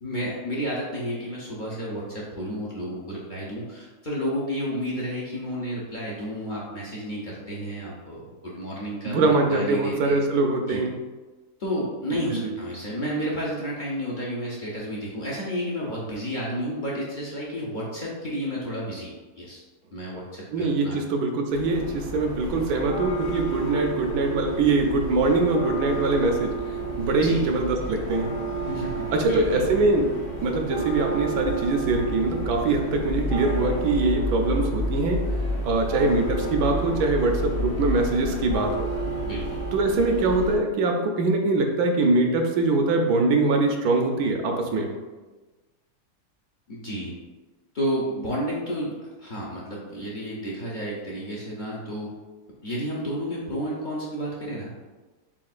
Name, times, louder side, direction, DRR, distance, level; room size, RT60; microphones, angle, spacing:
voice 1, 0.0-10.2 10.7-10.8 11.6-19.6 19.9-21.0 27.2-27.5 28.6-29.6 39.2-39.6 46.7-47.2 47.7-52.1 52.6-54.7, equal, 45° left, -5 dB, 0.6 m, -31 dB
voice 2, 9.0-10.9 12.4-12.5 20.5-26.5 27.0-28.3 29.1-30.1 30.4-35.2 35.6-38.9 39.7-44.9, right 3 dB, 75° right, 3 dB, 1.1 m, -23 dB
sound 1, 21.5-40.5, right 2 dB, 60° left, 1.2 m, -30 dB
7.1 x 2.5 x 2.4 m, 1.2 s
omnidirectional pair, 1.7 m